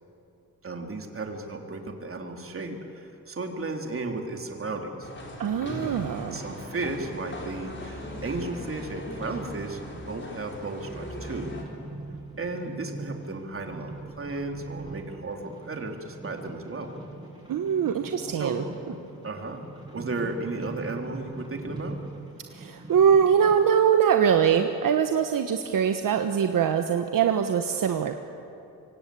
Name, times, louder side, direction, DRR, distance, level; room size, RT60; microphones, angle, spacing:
voice 1, 0.6-5.1 5.7-11.5 12.4-16.9 18.3-18.6 19.2-19.6 19.9-22.0, right 3 dB, 40° right, 3 dB, 3.4 m, -34 dB
sound 1, 4.9-23.5, right 2 dB, 10° right, 7.9 m, -43 dB
sound 2, 5.0-11.6, left 1 dB, 30° left, 4.3 m, -39 dB
voice 2, 5.4-6.4 17.5-18.6 22.5-28.2, right 8 dB, 65° right, 6 dB, 1.3 m, -23 dB
25.5 x 24.0 x 8.5 m, 2.7 s
cardioid pair, 100°, 35 cm